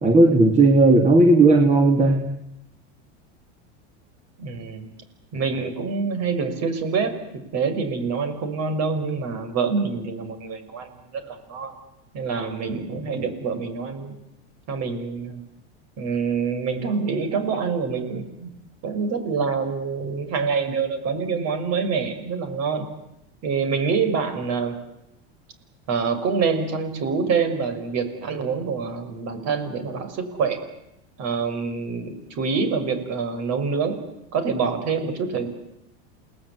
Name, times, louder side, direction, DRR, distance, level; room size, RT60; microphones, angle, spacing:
voice 1, 0.0-2.2, right 2 dB, 20° right, 4 dB, 2.9 m, -15 dB
voice 2, 4.4-4.9 5.3-11.7 12.1-14.2 14.7-15.4 16.0-18.5 18.8-22.9 23.4-24.8 25.9-30.6 31.2-34.0 34.3-35.5, right 5 dB, 50° right, 9 dB, 6.0 m, -26 dB
28.5 x 19.5 x 9.9 m, 0.87 s
supercardioid pair, 120°, 34 cm